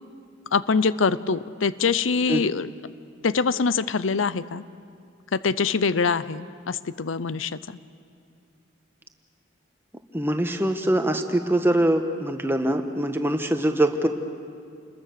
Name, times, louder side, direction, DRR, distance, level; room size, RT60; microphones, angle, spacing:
voice 1, 0.5-2.7 3.2-4.6 5.3-7.6, left 5 dB, 85° left, 16 dB, 0.7 m, -24 dB
voice 2, 10.1-14.1, right 1 dB, 10° right, 6 dB, 1.2 m, -23 dB
28.5 x 21.5 x 6.8 m, 2.4 s
head